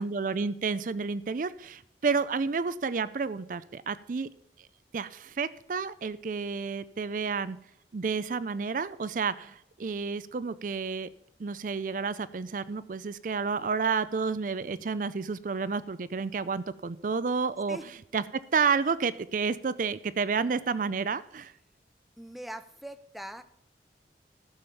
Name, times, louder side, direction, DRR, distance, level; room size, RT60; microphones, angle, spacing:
voice 1, 0.0-4.3 4.9-7.6 7.9-11.1 11.4-17.8 18.1-21.5, right 5 dB, 45° right, 16 dB, 0.4 m, -30 dB
voice 2, 22.2-23.4, right 1 dB, ahead, 9 dB, 0.6 m, -42 dB
13.0 x 7.0 x 5.7 m, 0.76 s
head